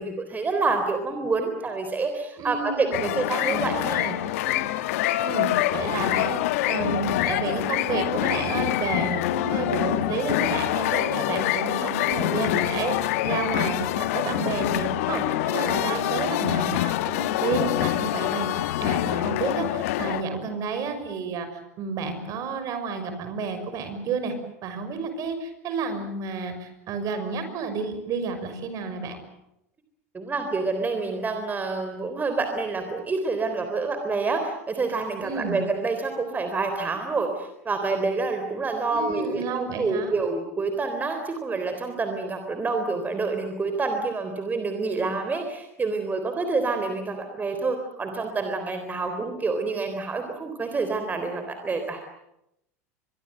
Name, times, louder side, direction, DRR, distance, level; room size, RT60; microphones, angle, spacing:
voice 1, 0.0-3.8 4.4-4.7 30.1-52.0, right 3 dB, 20° right, 6 dB, 3.8 m, -28 dB
voice 2, 2.4-3.2 3.5-4.2 5.2-6.4 6.7-24.3 24.6-29.2 35.2-35.6 38.9-40.1, right 5 dB, 45° right, 9 dB, 6.0 m, -31 dB
sound 1, 2.9-20.2, left 15 dB, 70° left, 1.3 m, -26 dB
25.0 x 22.5 x 7.9 m, 0.84 s
hypercardioid pair, 90°, 8 cm